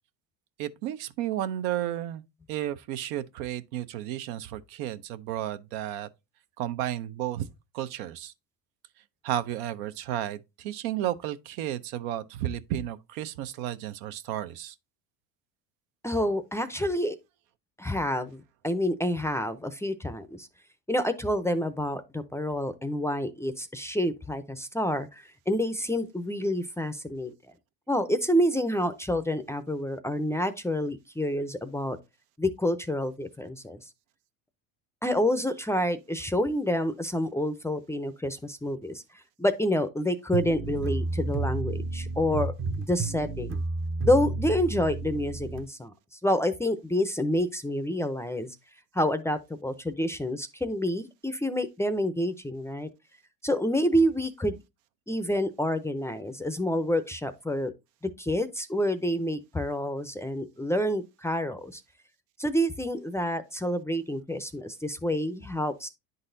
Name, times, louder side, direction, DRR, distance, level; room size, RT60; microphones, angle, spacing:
voice 1, 0.6-2.2 2.5-6.1 6.6-7.5 7.7-8.3 9.2-14.7, right 12 dB, 75° right, 0.7 m, -32 dB
voice 2, 16.0-17.2 17.8-20.5 20.9-27.3 27.9-32.0 32.4-33.9 35.0-39.0 39.4-43.6 44.0-48.6 48.9-52.9 53.4-54.6 55.1-57.7 58.2-61.8 62.4-65.9, equal, 5° left, 0.5 m, -28 dB
sound 1, 40.3-45.6, right 3 dB, 30° right, 0.7 m, -31 dB
9.9 x 4.0 x 2.6 m
supercardioid pair, 95°, 42 cm